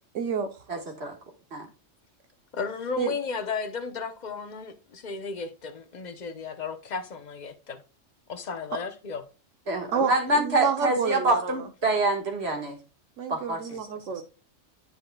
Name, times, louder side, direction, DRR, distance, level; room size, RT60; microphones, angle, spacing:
voice 1, 0.1-0.5 3.0-3.1 9.9-11.7 13.2-14.2, right 6 dB, 75° right, 1.2 m, -29 dB
voice 2, 0.7-1.1 1.5-1.7 9.7-12.8 13.3-13.8, right 2 dB, 55° right, 1.9 m, -26 dB
voice 3, 2.5-7.8 8.3-9.2 13.7-13.8, left 5 dB, 40° left, 0.8 m, -34 dB
10.0 x 5.3 x 2.2 m
omnidirectional pair, 1.3 m